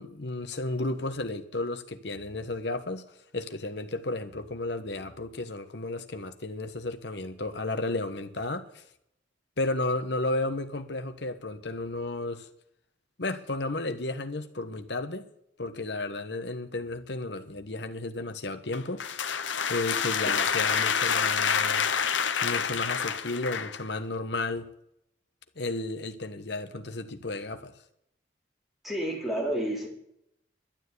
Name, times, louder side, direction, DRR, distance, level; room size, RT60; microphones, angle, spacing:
voice 1, 0.0-3.0 3.3-8.8 9.6-12.5 13.2-15.3 15.6-19.0 19.7-21.9 22.4-24.7 25.6-27.7, left 2 dB, 65° left, 1.3 m, -33 dB
sound 1, 18.7-23.8, left 7 dB, 85° left, 1.0 m, -27 dB
voice 2, 28.8-29.9, right 1 dB, ahead, 3.9 m, -30 dB
12.0 x 9.4 x 9.6 m
head